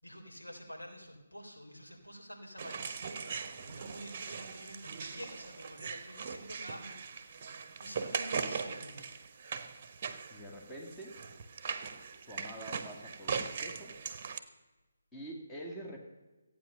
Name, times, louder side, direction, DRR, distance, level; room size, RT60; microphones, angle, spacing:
voice 1, 0.0-9.1, equal, 90° left, 1 dB, 3.5 m, -49 dB
sound 1, 2.6-14.4, right 5 dB, 35° right, 1.1 m, -40 dB
voice 2, 10.3-11.1 12.3-13.9 15.1-16.0, right 1 dB, 10° left, -2 dB, 2.1 m, -46 dB
15.0 x 9.1 x 6.5 m, 1.2 s
figure-of-eight pair, 150°, 0 cm